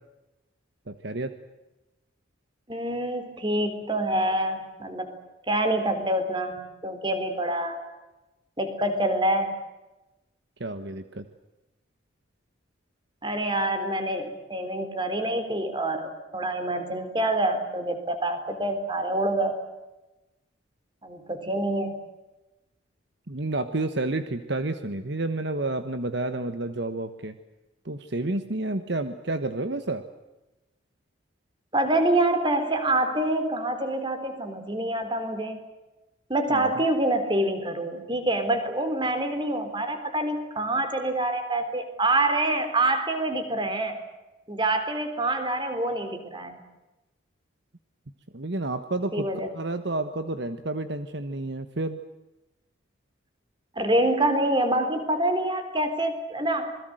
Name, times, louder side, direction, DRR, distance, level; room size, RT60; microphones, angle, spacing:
voice 1, 0.9-1.3 10.6-11.3 23.3-27.4 27.8-30.0 36.5-36.7 48.3-49.3 49.5-52.0, right 2 dB, 55° right, 9 dB, 1.3 m, -30 dB
voice 2, 2.7-5.2 5.5-7.8 8.6-9.5 13.2-19.6 21.0-22.0 31.7-35.6 36.3-44.0 44.5-46.6 49.1-49.5 53.8-56.7, right 1 dB, 25° right, 8 dB, 3.8 m, -26 dB
27.5 x 22.0 x 7.9 m, 1.0 s
head